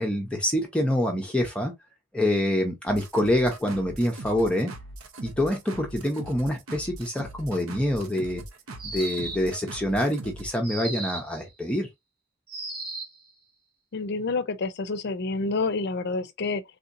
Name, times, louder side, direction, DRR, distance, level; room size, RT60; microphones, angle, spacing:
voice 1, 0.0-1.7 2.1-4.7 5.2-8.4 8.8-11.9, left 1 dB, 5° left, 0.6 m, -26 dB
sound 1, 2.9-10.6, right 2 dB, 80° right, 0.7 m, -41 dB
sound 2, 8.8-9.6 10.6-11.4 12.5-13.2, right 2 dB, 50° right, 1.2 m, -35 dB
voice 2, 13.9-16.6, left 3 dB, 55° left, 0.5 m, -28 dB
3.4 x 2.8 x 2.5 m
head